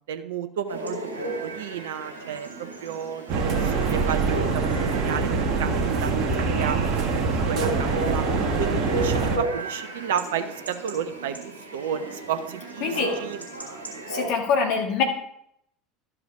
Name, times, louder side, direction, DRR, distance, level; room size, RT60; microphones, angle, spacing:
voice 1, 0.1-1.0 1.4-2.5 2.8-6.8 7.3-8.3 8.6-13.4, right 8 dB, 65° right, 10 dB, 0.6 m, -32 dB
Chatter / Bark / Livestock farm animals working animals, 0.7-14.3, right 2 dB, 85° right, 2.1 m, -34 dB
sound 1, 3.3-9.4, right 4 dB, 50° right, 1.6 m, -24 dB
voice 2, 12.8-13.1 14.1-15.0, left 5 dB, 55° left, 2 dB, 1.7 m, -24 dB
12.0 x 5.0 x 4.7 m, 0.74 s
figure-of-eight pair, 70°, 0 cm